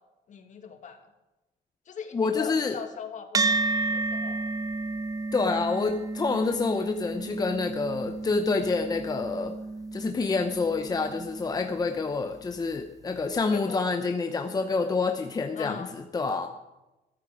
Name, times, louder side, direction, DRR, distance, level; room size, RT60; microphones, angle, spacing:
voice 1, 0.3-1.1 1.9-3.6 3.9-4.4 13.5-13.8 15.5-15.9, left 7 dB, 45° left, 6 dB, 2.0 m, -40 dB
voice 2, 2.1-2.8 5.3-9.5 9.9-16.5, left 4 dB, 25° left, 6 dB, 0.8 m, -27 dB
sound 1, 3.3-12.0, right 3 dB, 20° right, 0.6 m, -32 dB
14.0 x 13.5 x 5.0 m, 1.0 s
cardioid pair, 110°, 17 cm